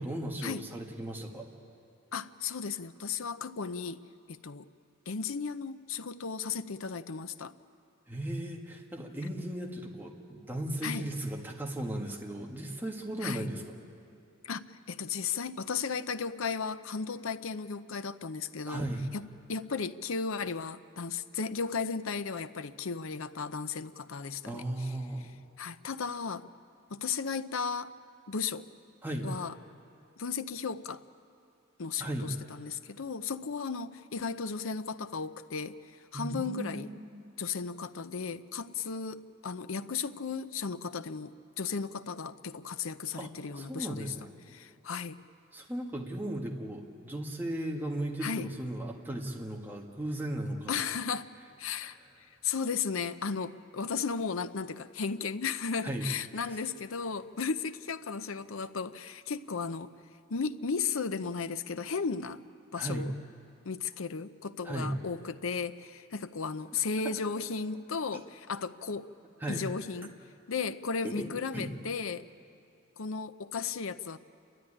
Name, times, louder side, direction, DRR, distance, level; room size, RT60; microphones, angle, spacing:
voice 1, 0.0-1.5 8.1-13.8 18.7-19.1 24.4-25.3 29.0-29.3 32.0-32.3 36.1-37.2 43.2-43.3 43.6-44.3 45.5-50.8 51.8-51.9 55.8-56.1 56.3-56.6 62.7-63.1 64.6-64.9 67.0-67.1 69.4-69.6 71.0-71.7, right 1 dB, 10° right, -1 dB, 1.7 m, -36 dB
voice 2, 2.1-4.0 4.3-4.7 5.1-7.5 10.8-11.1 13.2-13.5 14.4-18.9 19.1-24.9 25.2-25.3 25.6-26.5 26.9-27.9 28.3-28.7 29.2-29.6 30.2-31.0 31.8-35.8 36.1-36.9 37.4-44.1 44.5-45.2 48.2-48.5 50.7-51.3 51.6-52.0 52.4-59.9 60.3-62.4 62.7-63.1 63.6-69.1 69.5-70.1 70.5-72.2 73.0-74.2, left 5 dB, 70° left, 12 dB, 0.7 m, -35 dB
29.0 x 13.0 x 10.0 m, 2.6 s
head